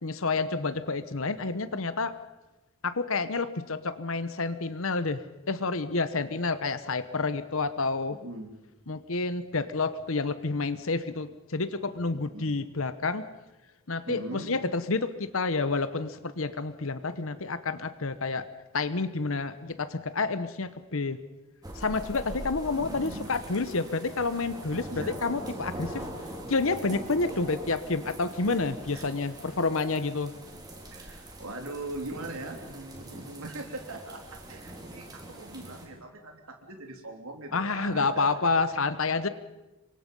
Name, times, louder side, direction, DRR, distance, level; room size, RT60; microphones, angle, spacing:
voice 1, 0.0-2.2 2.8-8.2 8.9-13.3 13.9-18.5 18.7-21.2 21.8-26.1 26.5-30.3 37.5-39.3, left 3 dB, 65° left, 13 dB, 1.0 m, -29 dB
voice 2, 8.1-8.6 12.3-12.6 14.1-14.5 22.8-23.3 24.9-25.1 28.9-29.0 30.9-38.3, right 2 dB, 75° right, 3 dB, 3.5 m, -41 dB
sound 1, 21.6-35.9, right 1 dB, 20° right, 3.8 m, -42 dB
27.0 x 24.0 x 5.4 m, 1.1 s
head